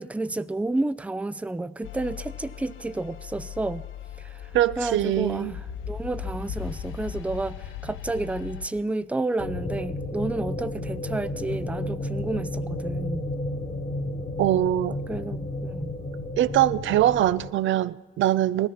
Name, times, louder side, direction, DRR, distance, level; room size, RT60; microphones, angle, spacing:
voice 1, 0.0-3.8 4.2-4.5 4.8-13.3 15.1-16.0, right 2 dB, 5° right, 0.5 m, -31 dB
sound 1, 1.8-8.7, left 8 dB, 80° left, 0.9 m, -38 dB
voice 2, 4.5-5.5 14.4-15.0 16.4-18.7, right 13 dB, 75° right, 0.6 m, -22 dB
sound 2, 9.4-17.5, left 1 dB, 40° left, 1.5 m, -32 dB
18.5 x 13.5 x 5.8 m
cardioid pair, 90°, 20 cm